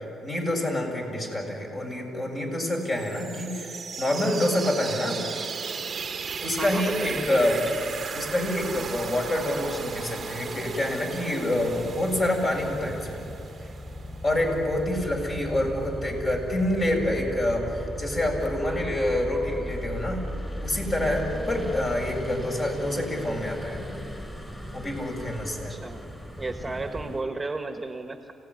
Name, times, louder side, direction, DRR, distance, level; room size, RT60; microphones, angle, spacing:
voice 1, 0.0-5.2 6.4-7.6 8.1-13.2 13.6-13.7 14.2-20.2 20.6-24.0 24.7-25.8, left 1 dB, 35° left, 1 dB, 7.2 m, -27 dB
sound 1, 2.8-14.5, right 6 dB, 45° right, 1.0 m, -36 dB
voice 2, 6.6-7.7 25.7-26.0 26.4-28.3, right 3 dB, 20° right, 5 dB, 1.5 m, -33 dB
sound 2, 11.5-27.2, equal, 15° left, 5.3 m, -37 dB
29.0 x 17.5 x 9.8 m, 2.7 s
cardioid pair, 90°, 0 cm